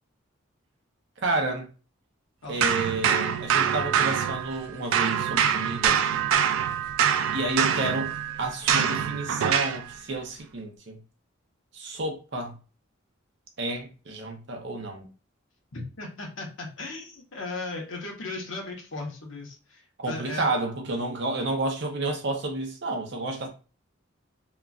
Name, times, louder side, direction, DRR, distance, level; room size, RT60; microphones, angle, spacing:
voice 1, 1.2-1.7 2.5-6.0 7.3-8.1 8.4-11.0 11.7-12.6 13.6-15.1 20.0-23.5, right 2 dB, 55° right, 0.7 m, -30 dB
sound 1, 2.6-4.7 4.9-9.8, right 8 dB, 75° right, 0.3 m, -25 dB
voice 2, 15.7-20.5, left 2 dB, 70° left, 1.0 m, -36 dB
2.9 x 2.4 x 2.4 m
head